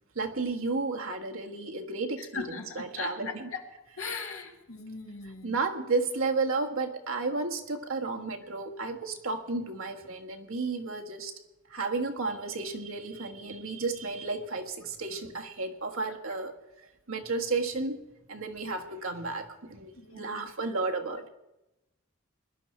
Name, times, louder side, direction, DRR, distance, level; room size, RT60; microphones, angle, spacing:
voice 1, 0.1-3.4 5.4-11.3 11.7-16.5 17.1-18.0 18.3-21.3, right 3 dB, 80° right, 3 dB, 1.5 m, -32 dB
voice 2, 2.2-3.7 4.0-5.6 20.0-20.5, left 4 dB, 80° left, 3 dB, 2.0 m, -39 dB
21.0 x 11.5 x 4.4 m, 0.95 s
head